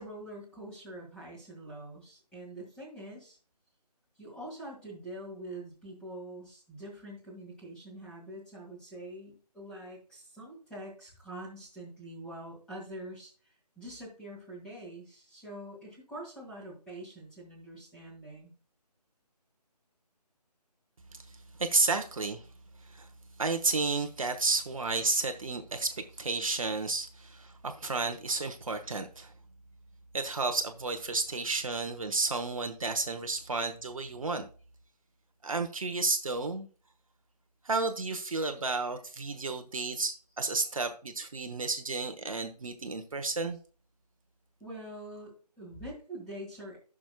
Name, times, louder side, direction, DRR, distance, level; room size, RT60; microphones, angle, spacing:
voice 1, 0.0-3.4 4.2-18.5 44.6-46.8, right 1 dB, 5° left, 2.0 m, -45 dB
voice 2, 21.3-22.5 22.9-23.1 23.4-29.3 30.1-34.5 35.4-36.7 37.6-43.6, right 3 dB, 55° right, 1.0 m, -32 dB
14.5 x 6.2 x 2.3 m
figure-of-eight pair, 160°, 21 cm